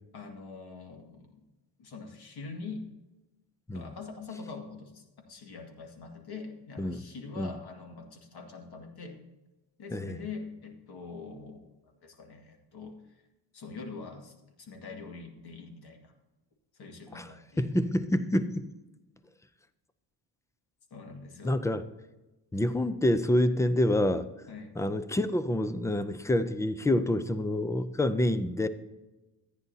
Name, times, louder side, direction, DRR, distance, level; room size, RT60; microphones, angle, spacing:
voice 1, 0.1-1.5 1.8-2.9 3.7-9.2 9.8-13.1 13.5-16.1 16.7-17.7 20.9-21.6 24.5-24.8, left 4 dB, 60° left, 2.1 m, -44 dB
voice 2, 17.6-18.6 21.4-21.8 22.5-24.3 24.8-28.7, left 1 dB, 10° left, 0.3 m, -27 dB
14.5 x 9.7 x 2.8 m
cardioid pair, 155°, 44 cm